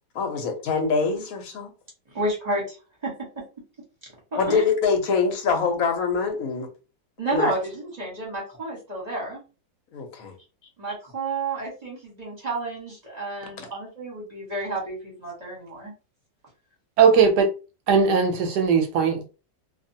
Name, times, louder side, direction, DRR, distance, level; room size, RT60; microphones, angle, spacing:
voice 1, 0.1-1.7 4.3-6.7 7.3-7.5 9.9-10.3, left 5 dB, 60° left, 1.1 m, -24 dB
voice 2, 2.1-2.8 3.0-3.4 4.3-4.6 7.2-9.4 10.8-15.9, right 2 dB, 30° right, 0.9 m, -30 dB
voice 3, 17.0-17.5 17.9-19.3, right 5 dB, 75° right, 1.1 m, -19 dB
2.7 x 2.3 x 2.7 m
omnidirectional pair, 1.9 m